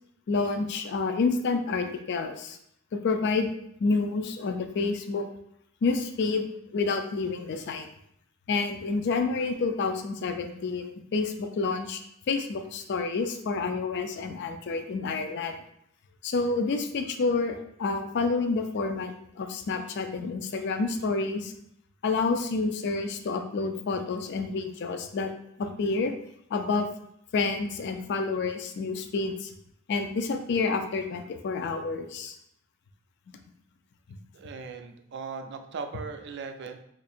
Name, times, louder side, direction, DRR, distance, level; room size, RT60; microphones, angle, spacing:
voice 1, 0.3-2.6 2.9-3.5 3.8-5.3 5.8-7.9 8.5-12.0 12.3-15.6 16.2-21.5 22.0-25.3 25.6-26.1 26.5-26.9 27.3-29.5 29.9-32.4 34.1-34.2, left 4 dB, 55° left, 7 dB, 0.4 m, -29 dB
voice 2, 34.3-36.8, right 5 dB, 55° right, 6 dB, 0.4 m, -38 dB
2.8 x 2.5 x 4.2 m, 0.72 s
head